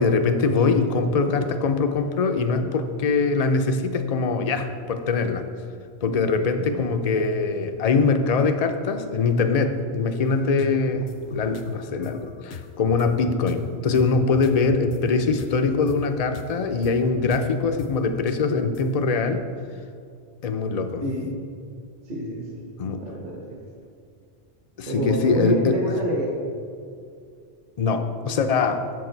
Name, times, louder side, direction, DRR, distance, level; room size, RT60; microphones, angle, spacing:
voice 1, 0.0-5.4 6.0-19.4 20.4-21.0 22.8-23.0 24.8-26.0 27.8-28.8, left 4 dB, 45° left, 7 dB, 0.5 m, -23 dB
sound 1, 10.2-16.0 16.3-16.5 16.8-17.9 18.3-19.1, left 6 dB, 70° left, 0.8 m, -37 dB
voice 2, 22.1-22.6 23.0-23.6 24.9-26.4, right 1 dB, 40° right, -1 dB, 1.1 m, -28 dB
8.4 x 7.1 x 4.5 m, 2.3 s
omnidirectional pair, 1.2 m